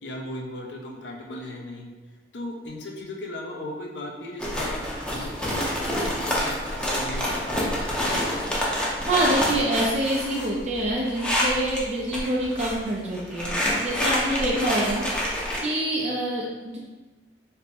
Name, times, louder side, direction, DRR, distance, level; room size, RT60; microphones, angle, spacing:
voice 1, 0.0-1.9 2.3-8.2, left 1 dB, 75° left, 0 dB, 0.6 m, -37 dB
sound 1, 4.4-11.8 12.1-12.8 13.1-15.6, equal, 5° left, 0.6 m, -27 dB
voice 2, 9.0-16.8, right 1 dB, 40° right, -4 dB, 0.5 m, -26 dB
3.4 x 2.1 x 4.3 m, 1.2 s
head